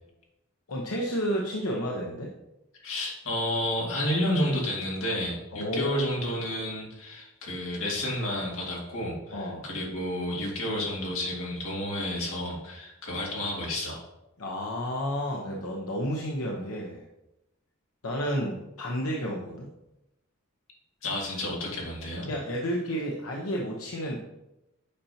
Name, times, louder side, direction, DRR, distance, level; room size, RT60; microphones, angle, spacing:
voice 1, 0.7-2.3 5.5-6.0 9.3-9.7 14.4-17.0 18.0-19.7 22.3-24.2, equal, 85° left, -1 dB, 0.9 m, -31 dB
voice 2, 2.8-14.0 21.0-22.3, left 1 dB, 70° left, -3 dB, 2.2 m, -31 dB
8.5 x 5.7 x 2.8 m, 0.92 s
head